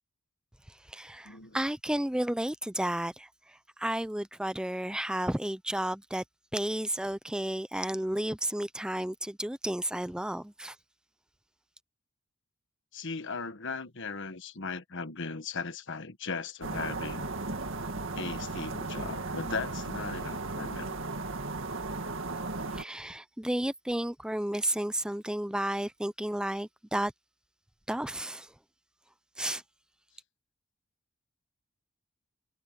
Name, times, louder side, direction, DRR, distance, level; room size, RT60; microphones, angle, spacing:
voice 1, 0.7-6.2 6.5-10.8 22.7-27.1 27.9-28.5 29.4-29.6, right 1 dB, 5° right, 0.4 m, -32 dB
voice 2, 1.2-1.6 12.9-17.3 18.1-21.0, left 4 dB, 60° left, 1.4 m, -38 dB
sound 1, 16.6-22.8, right 3 dB, 60° right, 2.1 m, -36 dB
head